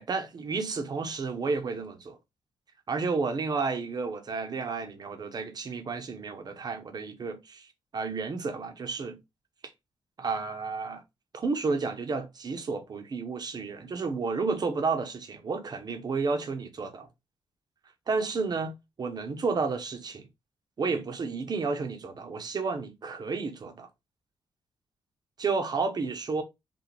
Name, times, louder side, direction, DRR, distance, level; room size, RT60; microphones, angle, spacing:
voice 1, 0.0-2.2 2.9-9.2 10.2-11.0 11.3-17.1 18.1-20.3 20.8-23.9 25.4-26.4, right 4 dB, 45° right, 1.1 m, -31 dB
5.1 x 2.7 x 3.4 m
cardioid pair, 105°, 9 cm